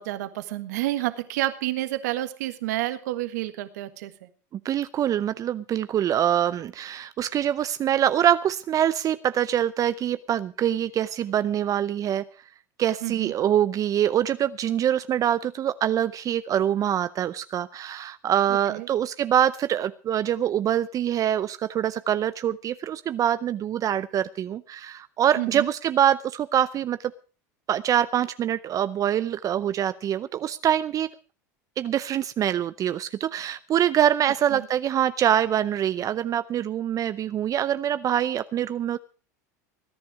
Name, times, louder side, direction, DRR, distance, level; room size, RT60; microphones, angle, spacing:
voice 1, 0.0-4.3 13.0-13.3 18.7-18.9 25.4-25.7 34.5-34.7, right 16 dB, 75° right, 11 dB, 1.6 m, -29 dB
voice 2, 4.6-12.2 12.8-27.1 27.7-31.1 31.8-39.0, right 10 dB, 40° right, 14 dB, 0.6 m, -24 dB
20.5 x 10.5 x 4.7 m, 0.37 s
hypercardioid pair, 90°, 9 cm